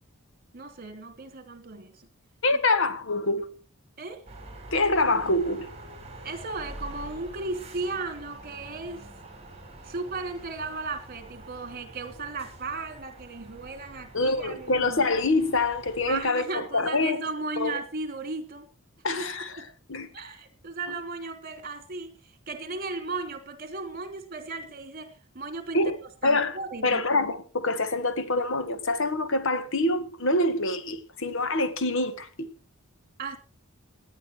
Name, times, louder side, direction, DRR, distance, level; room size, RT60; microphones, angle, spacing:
voice 1, 0.5-2.1 4.0-4.2 6.2-9.1 9.8-15.1 16.1-18.7 19.1-19.2 19.5-19.7 20.1-25.8 26.2-27.0 33.2-33.4, right 3 dB, 45° right, 3.0 m, -36 dB
voice 2, 2.4-3.5 4.7-5.7 14.1-17.2 17.6-17.8 19.0-19.6 19.9-20.1 25.7-25.9 26.2-26.6 26.8-32.5, left 2 dB, 65° left, 1.7 m, -25 dB
sound 1, 4.3-16.3, right 1 dB, 30° right, 5.3 m, -46 dB
18.5 x 10.5 x 4.6 m
head